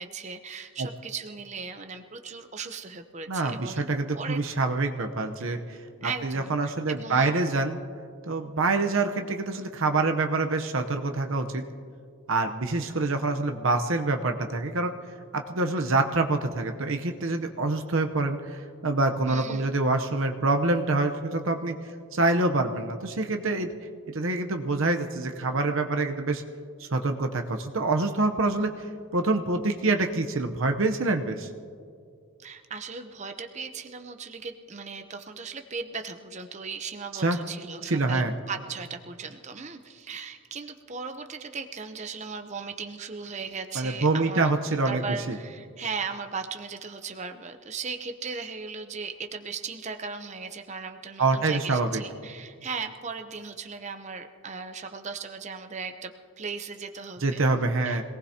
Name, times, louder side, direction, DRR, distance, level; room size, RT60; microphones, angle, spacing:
voice 1, 0.0-3.8 4.1-4.4 6.0-7.3 19.3-19.7 32.4-57.4 57.8-58.0, right 5 dB, 30° right, 7 dB, 0.7 m, -37 dB
voice 2, 3.3-7.8 8.2-11.6 12.3-14.9 15.3-21.7 22.1-23.7 24.1-26.4 26.8-28.9 29.1-31.5 37.1-37.4 37.9-38.3 43.7-45.4 51.2-52.0 57.2-58.0, right 3 dB, 65° right, 5 dB, 0.8 m, -26 dB
26.0 x 18.5 x 2.8 m, 2.3 s
head